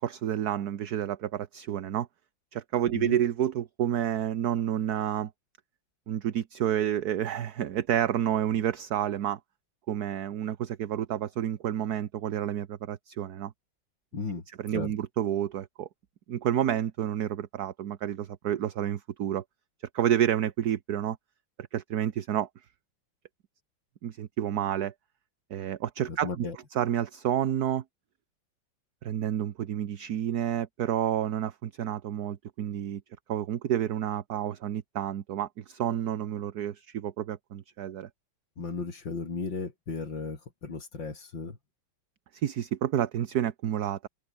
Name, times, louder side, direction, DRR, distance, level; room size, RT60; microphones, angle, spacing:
voice 1, 0.0-2.1 2.5-5.3 6.1-9.4 9.9-13.5 14.6-15.9 16.3-19.4 19.9-21.2 21.6-22.5 24.0-24.9 25.5-26.4 26.7-27.8 29.0-33.0 33.3-38.1 42.3-44.1, right 10 dB, 60° right, 1.4 m, -29 dB
voice 2, 14.1-14.4 14.7-14.9 26.1-26.6 38.6-41.6, left 4 dB, 80° left, 4.2 m, -35 dB
omnidirectional pair, 2.0 m